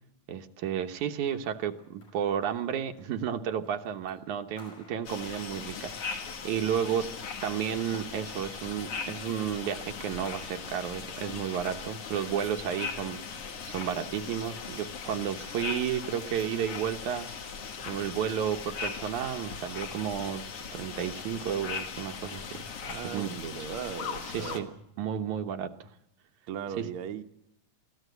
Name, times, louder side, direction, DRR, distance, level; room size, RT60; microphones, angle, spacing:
voice 1, 0.3-7.1 7.4-13.2 13.7-17.3 17.9-20.4 20.7-22.6 23.1-23.7 24.3-24.7 25.0-25.9 26.8-26.9, right 9 dB, 85° right, 7 dB, 2.5 m, -32 dB
sound 1, 0.9-13.2, left 2 dB, 85° left, 7.1 m, -60 dB
sound 2, 5.1-24.6, left 5 dB, 55° left, 2.5 m, -39 dB
voice 2, 22.8-24.7 26.5-27.2, right 8 dB, 60° right, 7 dB, 1.6 m, -37 dB
23.5 x 16.0 x 8.1 m, 0.79 s
omnidirectional pair, 3.3 m